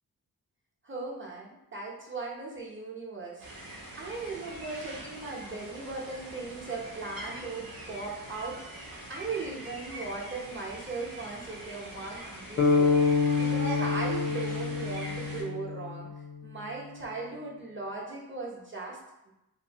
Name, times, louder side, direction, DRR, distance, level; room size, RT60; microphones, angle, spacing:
voice 1, 0.8-3.4 4.0-16.1 16.4-19.0, right 3 dB, 30° right, -4 dB, 0.8 m, -38 dB
sound 1, 3.4-15.4, right 1 dB, 65° right, 0.8 m, -43 dB
sound 2, 12.6-16.5, left 4 dB, 40° left, 0.5 m, -27 dB
2.6 x 2.5 x 2.9 m, 0.89 s
wide cardioid pair, 70°, 37 cm